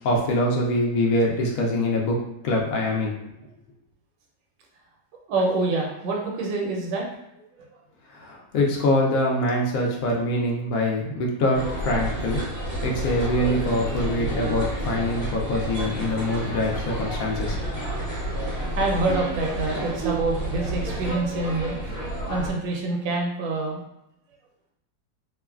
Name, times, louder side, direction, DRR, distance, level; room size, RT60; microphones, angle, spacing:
voice 1, 0.0-2.2 2.4-3.2 8.1-12.4 12.8-17.6, left 1 dB, 75° left, -1 dB, 0.7 m, -24 dB
voice 2, 5.3-7.1 17.6-18.0 18.7-23.8, right 2 dB, 85° right, 0 dB, 1.3 m, -27 dB
sound 1, 11.5-22.5, right 1 dB, 40° left, 1.1 m, -30 dB
3.0 x 2.1 x 2.3 m, 0.85 s
omnidirectional pair, 2.0 m